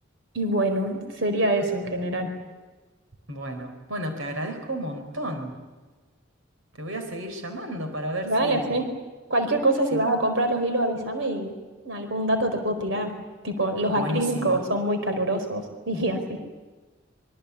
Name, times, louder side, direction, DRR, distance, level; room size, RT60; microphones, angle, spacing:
voice 1, 0.3-2.3 8.2-8.8 9.3-11.5 11.8-13.1 13.4-16.4, right 1 dB, 65° right, 6 dB, 4.7 m, -25 dB
voice 2, 3.3-5.6 6.8-8.8 9.9-10.0 13.9-14.6, equal, 85° right, 6 dB, 4.4 m, -32 dB
26.5 x 24.0 x 8.4 m, 1.3 s
head